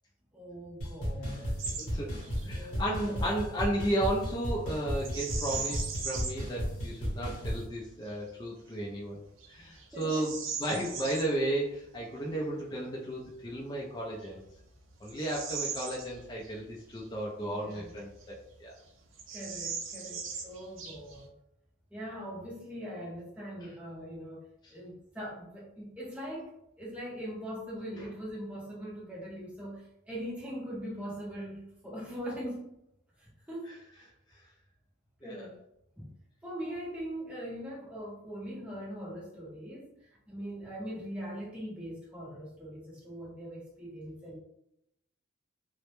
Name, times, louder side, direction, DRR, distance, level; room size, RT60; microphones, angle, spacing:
voice 1, 0.3-1.6 2.5-3.2 9.9-10.3 17.4-17.9 19.3-21.3 21.9-24.4 24.7-26.5 26.8-32.6 33.2-33.7 35.2-35.6 36.0-36.1 36.4-44.4, equal, 5° right, -6 dB, 0.7 m, -41 dB
sound 1, 0.8-7.7, equal, 60° left, 0.9 m, -35 dB
Bird vocalization bird call bird song, 1.6-1.9 2.2-2.5 5.0-6.5 7.0-7.1 7.8-8.2 8.7-8.8 9.4-11.3 13.4-13.5 14.1-16.6 16.9-17.0 17.7-18.5 18.8-18.9 19.1-21.3, right 5 dB, 75° right, 0.5 m, -39 dB
voice 2, 1.8-9.2 9.5-14.4 15.0-18.8 35.2-35.5, right 1 dB, 20° left, -3 dB, 0.3 m, -34 dB
2.0 x 2.0 x 2.9 m, 0.79 s
head